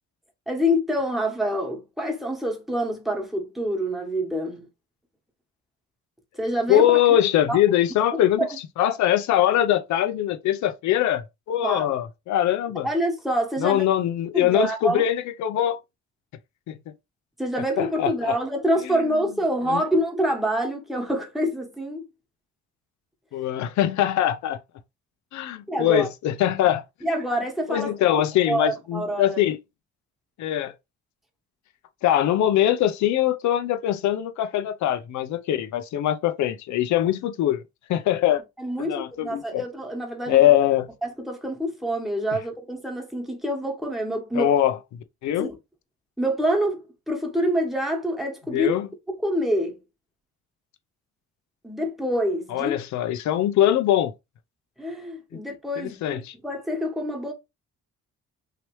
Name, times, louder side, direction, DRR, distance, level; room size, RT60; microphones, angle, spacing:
voice 1, 0.5-4.7 6.4-7.2 7.5-7.6 8.4-8.6 11.6-11.9 12.8-13.8 14.3-15.1 17.4-22.1 25.7-26.1 27.0-27.9 28.5-29.4 38.6-40.5 41.0-44.5 45.4-45.6 46.2-48.8 49.1-49.8 51.6-52.8 54.8-57.3, equal, ahead, 1.2 m, -26 dB
voice 2, 6.7-8.5 8.8-12.9 13.6-15.8 16.7-16.8 17.8-18.4 19.7-19.8 23.3-24.6 25.3-26.8 27.7-29.6 30.4-30.7 32.0-37.6 37.9-38.4 38.8-39.6 40.3-40.9 44.4-44.8 45.2-45.5 48.5-48.9 52.5-54.1 55.8-56.3, left 12 dB, 70° left, 0.5 m, -22 dB
3.1 x 2.9 x 3.0 m
cardioid pair, 90°, 30 cm